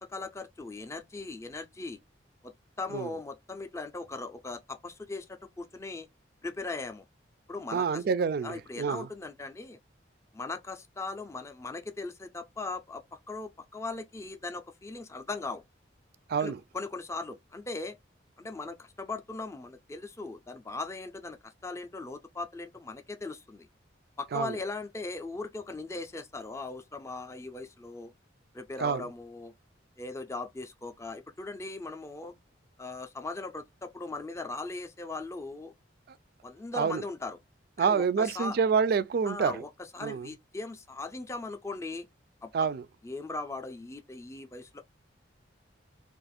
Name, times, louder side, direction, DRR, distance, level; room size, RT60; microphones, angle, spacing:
voice 1, 0.0-2.0 2.4-2.5 2.8-6.1 6.4-7.0 7.5-8.0 8.4-9.8 10.3-15.6 16.4-17.9 18.4-23.7 24.2-28.1 28.5-29.5 30.0-32.3 32.8-35.7 36.4-37.4 37.8-38.6 39.3-42.0 42.4-42.5 43.0-44.8, left 3 dB, 15° left, 0.4 m, -39 dB
voice 2, 7.7-9.1 16.3-16.6 24.3-24.6 28.8-29.0 36.1-36.2 36.7-37.0 37.8-39.6 40.0-40.3 42.5-42.8, right 6 dB, 50° right, 0.3 m, -27 dB
2.4 x 2.4 x 4.1 m
head